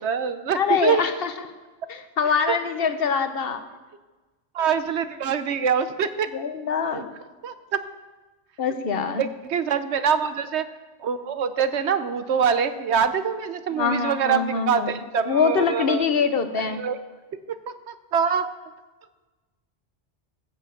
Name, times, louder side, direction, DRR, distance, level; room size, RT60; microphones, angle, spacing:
voice 1, 0.0-1.0 2.5-2.6 4.5-6.3 6.9-7.0 7.4-7.8 9.2-10.7 11.0-16.0 16.5-17.0 17.5-18.5, right 7 dB, 70° right, 11 dB, 1.0 m, -24 dB
voice 2, 0.5-1.5 1.9-3.7 6.3-7.1 8.6-9.2 13.7-14.9 15.3-16.8, left 6 dB, 55° left, 9 dB, 1.1 m, -24 dB
14.5 x 8.1 x 7.0 m, 1.2 s
omnidirectional pair, 1.2 m